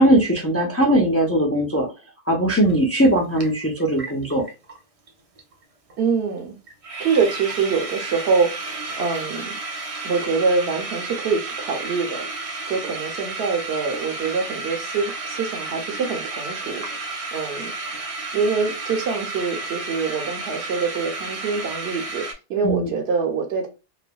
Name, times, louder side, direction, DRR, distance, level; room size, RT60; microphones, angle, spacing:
voice 1, 0.0-1.9 2.3-4.4 22.6-22.9, right 1 dB, 20° left, 0.4 m, -19 dB
sound 1, 2.7-2.8 3.0-4.8 5.1-5.2 5.4-5.6 5.9-6.0 6.4-6.5 6.7-22.3, right 3 dB, 45° right, 0.5 m, -32 dB
voice 2, 6.0-6.6 7.0-9.6 10.0-12.2 12.7-17.7 18.3-23.7, right 5 dB, 75° right, 0.9 m, -25 dB
3.2 x 2.0 x 2.2 m
omnidirectional pair, 1.1 m